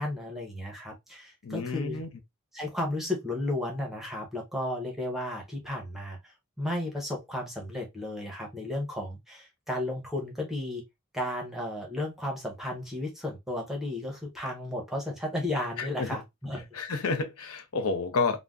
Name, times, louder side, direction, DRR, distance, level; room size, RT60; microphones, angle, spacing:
voice 1, 0.0-2.0 2.5-10.8 11.1-16.6, left 1 dB, ahead, 0.7 m, -34 dB
voice 2, 1.4-2.1 15.8-16.2 16.7-18.4, left 4 dB, 80° left, 0.6 m, -30 dB
2.5 x 2.1 x 3.3 m
head